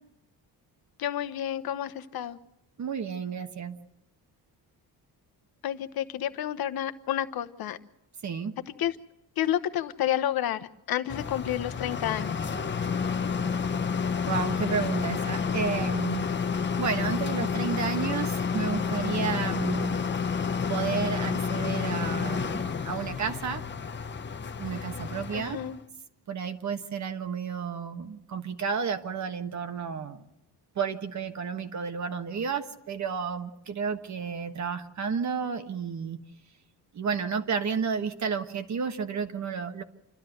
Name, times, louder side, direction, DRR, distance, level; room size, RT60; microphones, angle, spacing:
voice 1, 1.0-2.4 5.6-7.8 8.8-8.9 9.4-12.4 25.3-25.8, left 11 dB, 65° left, 12 dB, 1.1 m, -30 dB
voice 2, 2.8-3.8 8.2-8.5 14.2-16.3 16.8-20.0 20.7-23.6 24.6-25.6 26.3-30.2 30.7-36.2 36.9-39.8, right 6 dB, 45° right, 8 dB, 1.3 m, -32 dB
sound 1, 11.1-25.8, left 6 dB, 30° left, 0.8 m, -30 dB
28.5 x 12.5 x 7.9 m, 0.86 s
cardioid pair, 140°, 40 cm